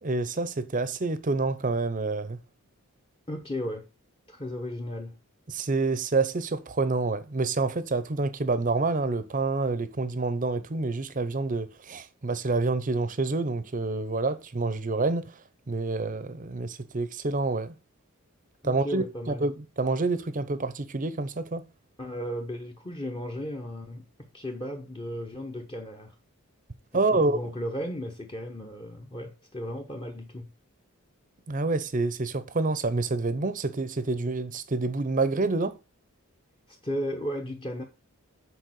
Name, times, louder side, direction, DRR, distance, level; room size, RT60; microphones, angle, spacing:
voice 1, 0.0-2.4 5.5-15.3 15.7-17.7 18.6-21.7 26.9-27.4 31.5-35.8, right 3 dB, 35° right, 0.7 m, -28 dB
voice 2, 3.3-3.9 4.3-5.2 18.6-19.5 22.0-26.1 27.1-30.5 36.7-37.8, equal, 25° left, 1.0 m, -35 dB
6.6 x 4.5 x 6.3 m
head